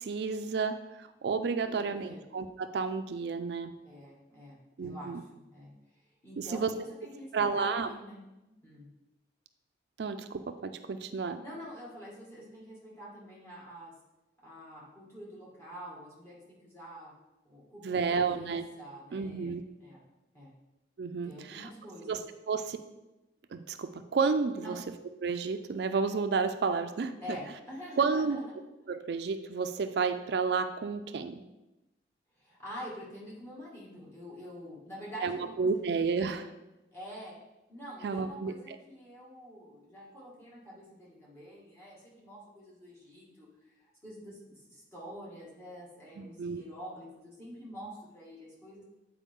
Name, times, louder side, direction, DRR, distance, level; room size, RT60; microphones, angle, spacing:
voice 1, 0.0-3.7 4.8-5.2 6.4-6.7 7.3-7.9 10.0-11.4 17.8-18.7 19.1-19.6 21.0-21.7 22.1-22.2 22.5-22.8 23.5-24.8 25.2-27.4 28.0-28.4 28.9-31.4 35.2-36.5 38.0-38.5 46.2-46.6, right 5 dB, 70° right, 9 dB, 0.4 m, -31 dB
voice 2, 1.6-2.2 3.8-8.9 11.4-13.9 14.4-17.1 17.4-20.0 20.3-20.5 21.2-22.2 24.6-24.8 27.2-28.5 32.4-36.3 36.9-37.3 37.7-48.8, equal, 15° left, -6 dB, 2.1 m, -47 dB
8.3 x 4.6 x 3.6 m, 1.0 s
head